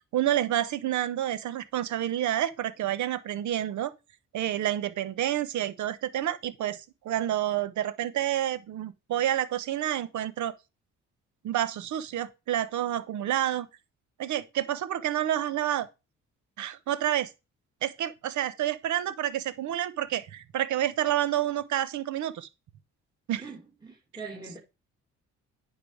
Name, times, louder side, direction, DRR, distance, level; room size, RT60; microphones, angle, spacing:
voice 1, 0.0-3.9 4.3-10.5 11.4-13.7 14.2-15.9 16.6-17.3 17.8-22.5 23.3-23.4, right 12 dB, 70° right, 1.0 m, -29 dB
voice 2, 23.4-24.6, right 4 dB, 15° right, 2.7 m, -42 dB
9.6 x 5.4 x 4.8 m
cardioid pair, 90°, 30 cm